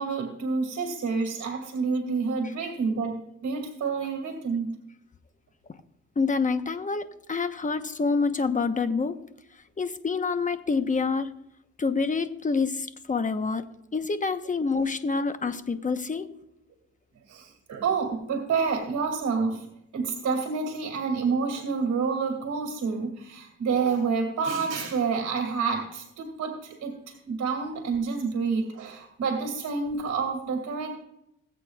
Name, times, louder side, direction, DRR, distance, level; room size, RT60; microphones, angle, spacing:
voice 1, 0.0-4.7 17.3-19.7 19.9-31.0, right 5 dB, 60° right, 1 dB, 2.3 m, -28 dB
voice 2, 6.2-9.2 9.8-11.3 11.8-13.6 13.9-16.3, left 4 dB, 25° left, 9 dB, 1.0 m, -27 dB
20.5 x 8.3 x 2.4 m, 0.80 s
cardioid pair, 90°, 30 cm